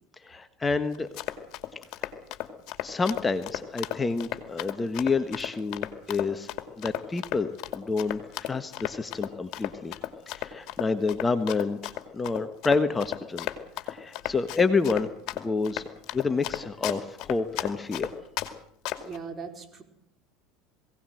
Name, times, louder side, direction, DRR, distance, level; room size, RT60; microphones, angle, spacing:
voice 1, 0.2-1.1 2.8-6.5 6.8-9.9 10.3-13.5 13.8-15.1 15.4-15.9 16.1-18.1, left 4 dB, 20° left, 10 dB, 1.3 m, -28 dB
Run, 0.9-18.5 18.9-19.2, left 15 dB, 55° left, 2.4 m, -34 dB
voice 2, 19.0-19.8, right 5 dB, 30° right, 6 dB, 4.5 m, -39 dB
21.5 x 17.5 x 7.9 m, 0.71 s
hypercardioid pair, 75°, 0 cm